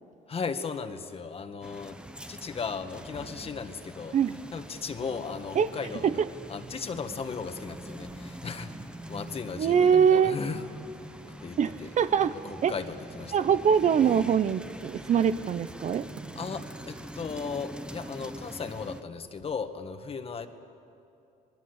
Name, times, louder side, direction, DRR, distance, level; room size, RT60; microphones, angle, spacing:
voice 1, 0.3-2.0 2.3-4.2 4.5-6.2 6.5-8.8 9.1-10.7 11.4-11.9 12.3-13.4 16.3-20.5, left 5 dB, 35° left, 8 dB, 1.7 m, -36 dB
sound 1, 1.6-19.0, right 1 dB, 5° right, 1.0 m, -44 dB
sound 2, 2.9-14.5, right 3 dB, 90° right, 6.1 m, -54 dB
voice 2, 9.6-10.4 11.6-12.3 12.6-12.7 13.3-16.3, right 7 dB, 45° right, 13 dB, 0.7 m, -23 dB
27.5 x 20.0 x 8.1 m, 2.7 s
cardioid pair, 110°, 17 cm